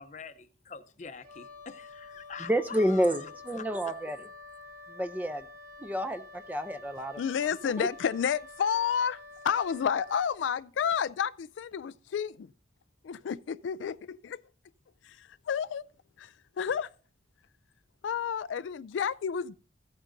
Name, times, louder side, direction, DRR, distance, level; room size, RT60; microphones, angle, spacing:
voice 1, 0.0-3.3 3.6-3.7, left 5 dB, 40° left, 0.7 m, -45 dB
Wind instrument woodwind instrument, 1.2-10.3, left 3 dB, 50° right, 2.0 m, -48 dB
voice 2, 2.4-4.2 4.9-5.5 5.8-7.2 7.6-7.9, equal, 10° right, 0.5 m, -29 dB
voice 3, 7.2-12.3 13.1-14.4 15.0-15.9 16.2-16.9 18.0-19.6, left 7 dB, 80° left, 0.3 m, -30 dB
15.0 x 8.7 x 2.6 m
head